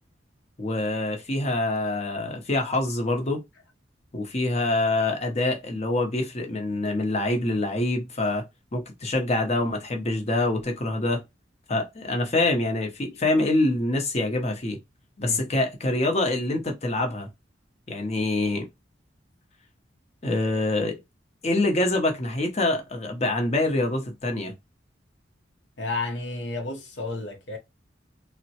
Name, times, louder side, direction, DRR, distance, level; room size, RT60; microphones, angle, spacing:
voice 1, 0.6-3.4 4.1-8.4 8.7-11.2 11.7-14.8 15.2-17.3 17.9-18.7 20.2-20.9 21.4-24.5, left 2 dB, 35° left, 0.7 m, -25 dB
voice 2, 15.2-15.5 25.8-27.6, left 2 dB, 70° left, 0.8 m, -32 dB
3.5 x 2.1 x 2.7 m
head